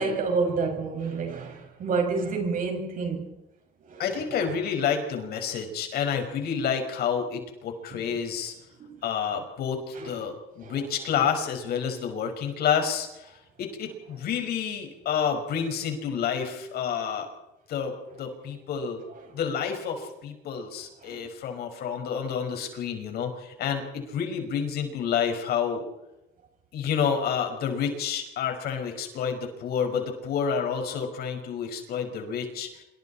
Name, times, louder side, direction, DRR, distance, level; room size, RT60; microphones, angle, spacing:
voice 1, 0.0-3.3 3.9-4.6 7.9-8.2 8.8-9.0 9.9-10.1 10.6-10.8 21.0-21.3, right 4 dB, 55° right, 6.4 m, -29 dB
voice 2, 4.0-8.5 9.0-17.3 17.7-19.0 19.3-25.8 26.7-32.8, left 7 dB, 70° left, 5.7 m, -29 dB
27.0 x 24.5 x 4.4 m
cardioid pair, 110°, 17 cm